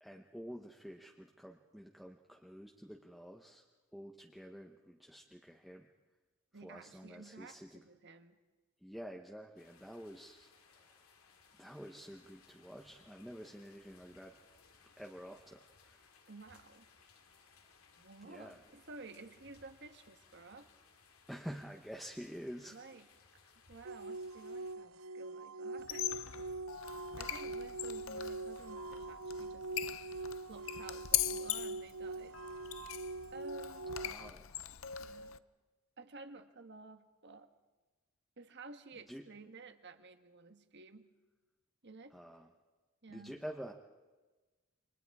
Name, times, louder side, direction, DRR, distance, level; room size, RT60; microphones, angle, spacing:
voice 1, 0.0-3.7 3.9-5.9 6.6-7.8 8.8-11.0 11.6-14.3 15.0-16.1 18.2-18.6 21.3-22.8 34.0-34.5 39.1-39.2 42.1-42.5 43.1-43.7, equal, ahead, 1 dB, 1.1 m, -49 dB
voice 2, 6.5-8.4 16.3-16.9 18.0-20.7 22.7-23.1 23.7-26.2 27.2-29.7 30.5-32.4 33.3-33.9 35.0-35.4 36.0-37.5 38.4-41.1 41.8-42.2 43.0-43.4, right 3 dB, 55° right, 8 dB, 1.5 m, -53 dB
sound 1, 9.6-24.8, left 5 dB, 85° left, 2.4 m, -65 dB
sound 2, 23.9-34.3, right 3 dB, 70° right, 0.6 m, -43 dB
Squeak, 25.8-35.4, left 13 dB, 65° left, 0.7 m, -41 dB
29.5 x 25.0 x 4.9 m, 1.3 s
head